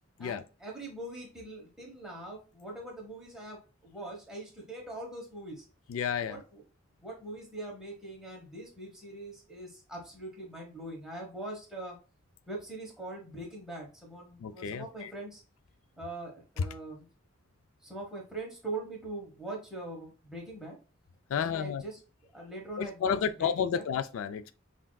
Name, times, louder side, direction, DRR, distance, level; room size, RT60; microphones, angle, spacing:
voice 1, 0.2-5.6 6.2-6.6 7.0-12.0 12.5-15.4 16.0-17.0 17.8-20.8 21.3-22.0 22.3-23.8, right 2 dB, 5° right, 1.1 m, -42 dB
voice 2, 5.9-6.4 14.4-15.1 16.6-16.7 21.3-21.8 22.8-24.5, left 7 dB, 80° left, 0.3 m, -31 dB
5.6 x 2.5 x 2.2 m
head